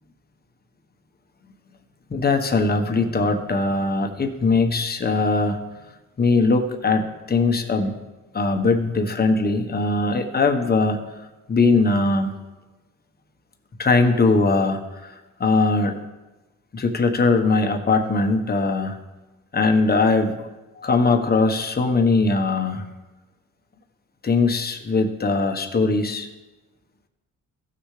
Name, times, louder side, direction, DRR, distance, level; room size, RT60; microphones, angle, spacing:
voice 1, 2.1-5.6 6.2-7.9 8.3-12.3 13.8-15.1 15.4-16.0 16.7-19.0 19.5-20.4 20.8-22.8 24.2-26.3, left 3 dB, 30° left, 5 dB, 1.3 m, -20 dB
16.5 x 6.4 x 3.3 m, 1.1 s
cardioid pair, 90°, 30 cm